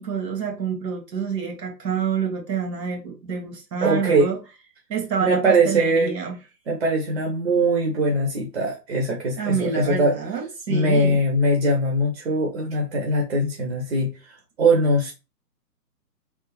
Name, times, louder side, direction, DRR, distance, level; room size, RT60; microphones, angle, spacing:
voice 1, 0.0-4.4 4.9-6.3 9.4-11.2, right 6 dB, 75° right, 1.8 m, -27 dB
voice 2, 3.8-4.3 5.2-6.1 6.7-10.1 10.7-15.1, right 1 dB, 40° right, 0.8 m, -21 dB
3.5 x 2.4 x 3.0 m
hypercardioid pair, 160°, 50 cm